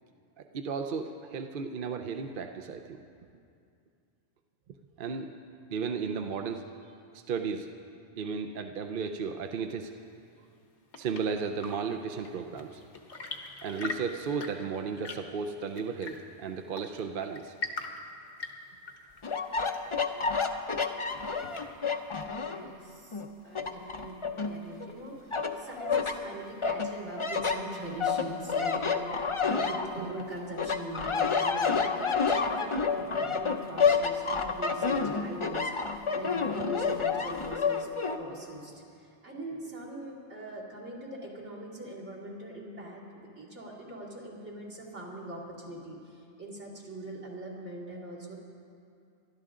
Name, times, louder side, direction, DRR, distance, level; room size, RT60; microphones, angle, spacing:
voice 1, 0.5-3.0 5.0-5.3 5.7-6.7 7.1-7.7 8.2-9.9 11.0-12.8 13.6-17.5 30.0-30.1, right 5 dB, 55° right, 6 dB, 0.7 m, -34 dB
Chirp tweet / Engine / Tap, 10.5-22.0, left 3 dB, 70° left, 1.4 m, -43 dB
sound 1, 19.2-22.7 23.1-24.9 25.3-26.2 26.6-30.2 30.6-38.2, left 5 dB, 30° left, 0.6 m, -29 dB
voice 2, 22.3-37.9 38.2-48.4, right 1 dB, 70° right, -5 dB, 3.2 m, -42 dB
23.5 x 12.5 x 3.8 m, 2.4 s
omnidirectional pair, 1.2 m